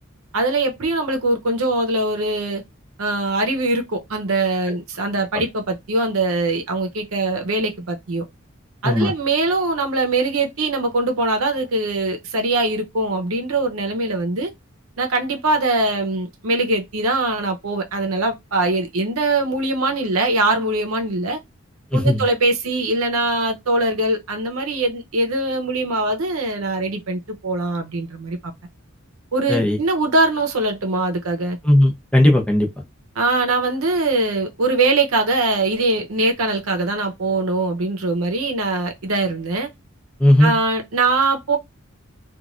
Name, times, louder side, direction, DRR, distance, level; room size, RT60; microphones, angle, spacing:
voice 1, 0.3-2.6 3.0-8.2 8.8-14.5 15.0-21.4 21.9-28.5 29.3-31.6 33.2-39.7 40.4-41.6, right 2 dB, 85° right, 0.7 m, -22 dB
voice 2, 21.9-22.2 29.5-29.8 31.6-32.7 40.2-40.5, left 1 dB, 5° left, 0.6 m, -16 dB
3.1 x 2.4 x 2.4 m
head